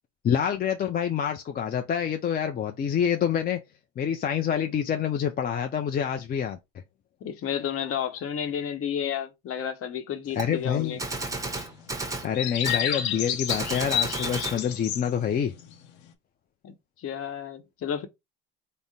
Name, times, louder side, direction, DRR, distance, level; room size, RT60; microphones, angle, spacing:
voice 1, 0.2-3.6 4.0-6.6 10.4-11.0 12.2-15.5, left 8 dB, 30° left, 0.4 m, -27 dB
voice 2, 7.2-11.0 16.6-18.1, left 8 dB, 45° left, 0.9 m, -32 dB
sound 1, 10.4-10.5 10.7-10.9 11.5-11.9 12.3-15.2 15.6-15.9, left 10 dB, 90° left, 0.8 m, -30 dB
Gunshot gunfire, 10.4-10.5 11.0-12.3 12.6-12.8 13.5-14.6, right 2 dB, 10° right, 0.8 m, -32 dB
3.6 x 2.1 x 4.1 m
supercardioid pair, 95°, 31 cm